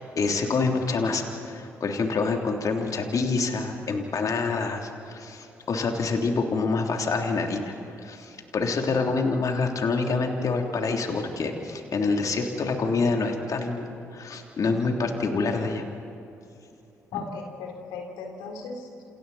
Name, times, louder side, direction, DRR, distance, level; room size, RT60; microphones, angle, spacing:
voice 1, 0.0-7.7 8.0-15.8, left 4 dB, 55° left, 2 dB, 3.2 m, -27 dB
voice 2, 17.1-19.0, left 4 dB, 75° left, 2 dB, 3.8 m, -37 dB
29.0 x 28.5 x 4.3 m, 2.8 s
hypercardioid pair, 40°, 7 cm